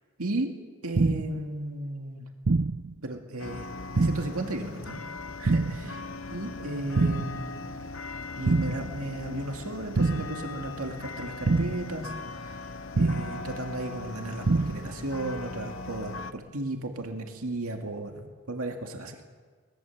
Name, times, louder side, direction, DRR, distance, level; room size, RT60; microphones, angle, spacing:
voice 1, 0.8-2.3 3.0-5.0 5.4-6.0 6.3-7.8 8.4-12.1 12.4-12.6 13.0-19.2, right 1 dB, 90° right, 3 dB, 2.2 m, -35 dB
sound 1, 0.9-1.4 2.4-2.9 3.9-4.4 5.4-5.9 6.9-7.4 8.4-8.9 9.9-10.4 11.4-11.9 12.9-13.4 14.4-14.9, right 3 dB, 50° right, 0.5 m, -25 dB
sound 2, 3.4-16.3, left 3 dB, 65° left, 0.9 m, -39 dB
23.5 x 21.0 x 7.2 m, 1.5 s
head